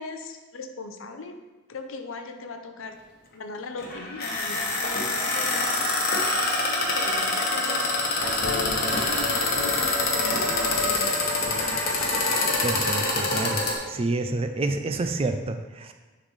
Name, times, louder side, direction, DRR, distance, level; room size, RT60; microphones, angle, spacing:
voice 1, 0.0-1.3 1.7-3.0 3.3-5.9 6.4-11.2, left 3 dB, 85° left, 6 dB, 0.6 m, -38 dB
sound 1, 3.8-13.7, left 2 dB, 50° left, 1.2 m, -25 dB
sound 2, 7.7-13.6, left 1 dB, 30° left, 1.0 m, -38 dB
sound 3, 8.2-13.8, left 3 dB, 60° right, 0.8 m, -39 dB
voice 2, 12.6-13.6 13.9-15.9, right 2 dB, 30° right, 7 dB, 0.4 m, -28 dB
9.9 x 3.9 x 3.2 m, 1.3 s
head